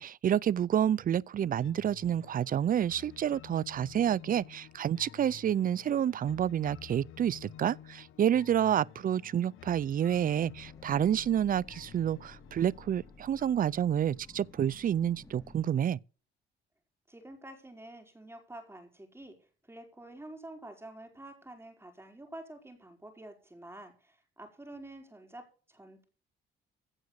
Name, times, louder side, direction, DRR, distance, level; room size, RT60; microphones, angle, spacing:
voice 1, 0.0-16.0, right 9 dB, 45° right, 0.5 m, -29 dB
sound 1, 1.6-14.6, left 10 dB, 85° left, 1.0 m, -52 dB
sound 2, 10.1-15.6, left 3 dB, 15° left, 4.3 m, -55 dB
voice 2, 17.1-19.4 19.6-26.0, right 1 dB, 10° right, 4.7 m, -48 dB
16.5 x 6.2 x 6.4 m
cardioid pair, 90°, 20 cm